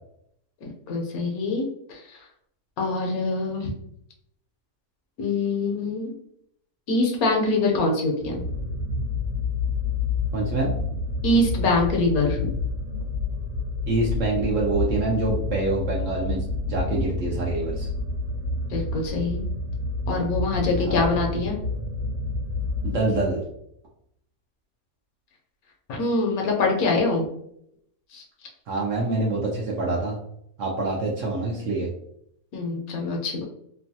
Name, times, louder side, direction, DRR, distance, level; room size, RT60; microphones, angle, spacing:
voice 1, 0.6-2.2 2.8-3.7 5.2-6.1 6.9-8.4 11.2-12.5 18.7-19.5 20.1-21.6 25.9-27.3 28.1-28.2 32.5-33.4, left 2 dB, 70° left, 0 dB, 1.0 m, -24 dB
sound 1, 8.2-23.5, left 3 dB, 85° right, 1.3 m, -29 dB
voice 2, 10.3-10.7 13.9-17.9 20.8-21.0 22.8-23.5 28.7-30.2 30.6-31.9, right 2 dB, 65° right, -2 dB, 0.8 m, -26 dB
3.0 x 2.2 x 2.6 m, 0.73 s
omnidirectional pair, 1.7 m